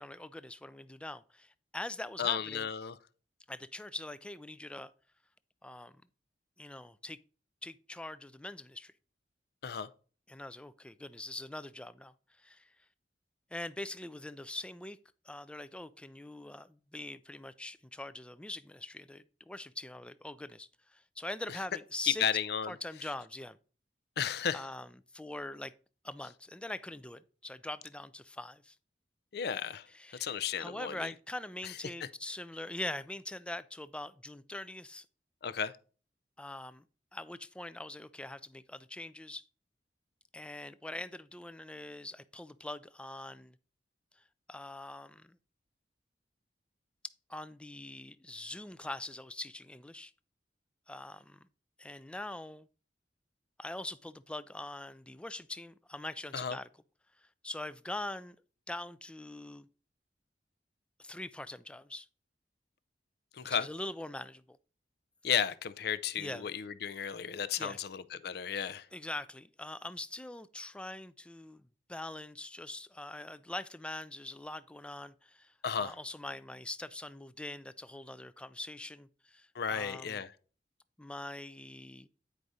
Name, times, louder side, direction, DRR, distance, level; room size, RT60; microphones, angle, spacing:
voice 1, 0.0-2.7 3.5-4.9 5.6-5.9 6.6-7.2 7.6-8.9 10.3-12.7 13.5-15.0 15.2-22.2 22.7-23.6 24.5-25.7 26.0-28.8 29.9-35.1 36.4-36.8 37.1-39.4 40.3-43.6 44.5-45.4 47.3-50.1 50.9-51.5 51.8-52.7 53.6-56.7 57.4-58.4 58.7-59.7 61.0-62.1 63.5-64.6 66.1-66.5 67.6-67.8 68.9-80.2 81.0-82.1, left 1 dB, 5° left, 0.3 m, -43 dB
voice 2, 2.2-3.0 9.6-9.9 22.0-22.8 24.2-24.6 29.3-29.9 30.2-31.1 31.6-31.7 35.4-35.7 56.3-56.6 63.3-63.7 65.2-68.9 75.6-75.9 79.5-80.3, left 8 dB, 65° left, 0.5 m, -33 dB
9.2 x 4.9 x 4.0 m
head